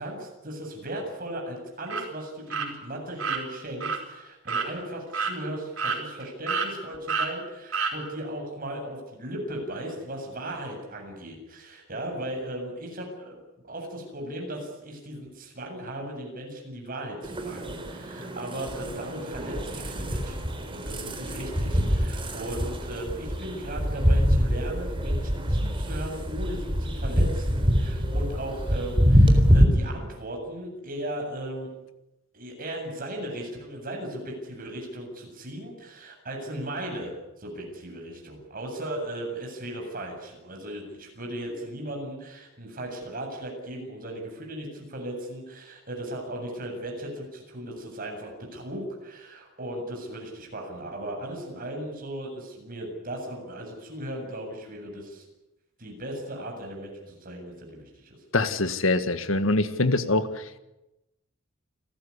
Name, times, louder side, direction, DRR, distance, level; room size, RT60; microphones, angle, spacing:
voice 1, 0.0-13.4 13.6-31.7 32.3-55.2 55.8-58.2, right 1 dB, 45° right, 1 dB, 7.8 m, -37 dB
sound 1, 1.9-2.0 2.5-2.7 3.2-3.4 3.8-4.0 4.5-4.7 5.1-5.3 5.8-6.2 6.5-6.7 7.1-7.3 7.7-7.9, right 5 dB, 80° right, 5.0 m, -28 dB
sound 2, 17.2-29.6, equal, 25° right, 3.8 m, -25 dB
voice 2, 58.3-60.6, left 2 dB, 70° left, 11 dB, 1.8 m, -24 dB
29.0 x 14.0 x 9.9 m, 0.96 s
head